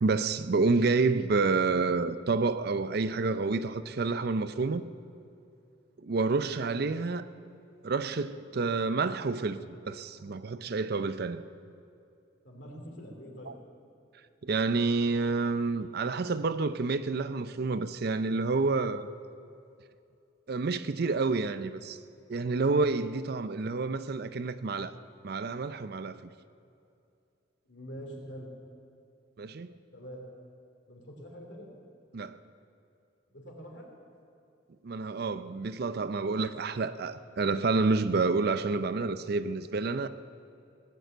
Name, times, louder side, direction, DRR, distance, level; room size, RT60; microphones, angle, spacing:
voice 1, 0.0-4.9 6.0-7.3 7.8-11.4 13.5-13.6 14.4-19.1 20.5-22.0 22.3-24.9 25.2-26.3 29.4-29.8 32.1-32.4 34.8-40.1, right 3 dB, 50° right, 0.5 m, -29 dB
voice 2, 12.4-13.5 27.6-28.5 29.9-30.2 30.9-31.7 33.3-33.9, equal, 60° left, 3.0 m, -45 dB
18.0 x 9.2 x 7.9 m
head